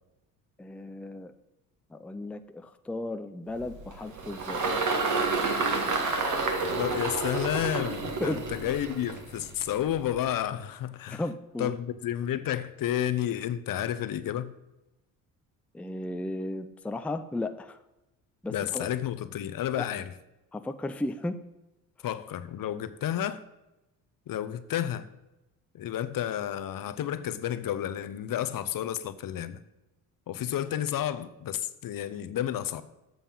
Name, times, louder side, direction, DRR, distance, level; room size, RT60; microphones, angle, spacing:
voice 1, 0.6-1.3 1.9-4.6 8.2-8.4 11.1-11.7 15.7-17.8 18.4-18.9 19.8-19.9 20.5-21.4, left 2 dB, 5° left, 9 dB, 0.5 m, -35 dB
Engine, 3.6-10.2, right 3 dB, 45° right, 1.7 m, -30 dB
voice 2, 6.7-11.2 11.6-14.5 18.5-20.1 22.0-23.4 24.3-25.1 25.7-29.6 30.3-32.8, left 11 dB, 55° left, 12 dB, 0.8 m, -31 dB
7.6 x 6.9 x 5.4 m, 0.98 s
supercardioid pair, 75°, 42 cm